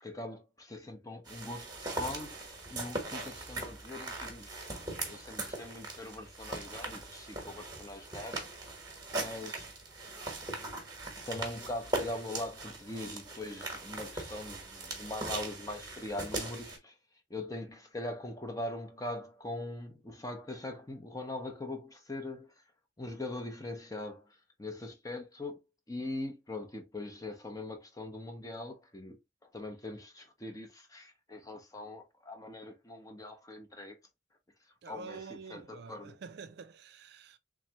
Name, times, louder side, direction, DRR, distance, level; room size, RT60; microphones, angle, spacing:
voice 1, 0.0-8.4 9.1-9.7 11.2-16.9 17.3-22.5 23.0-24.2 24.6-25.6 25.9-29.2 29.5-34.0 34.9-36.2, left 2 dB, 20° left, 0.7 m, -41 dB
sound 1, 1.3-16.8, right 2 dB, 20° right, 1.1 m, -40 dB
voice 2, 34.8-37.4, right 5 dB, 55° right, 0.3 m, -47 dB
3.5 x 3.2 x 2.8 m
head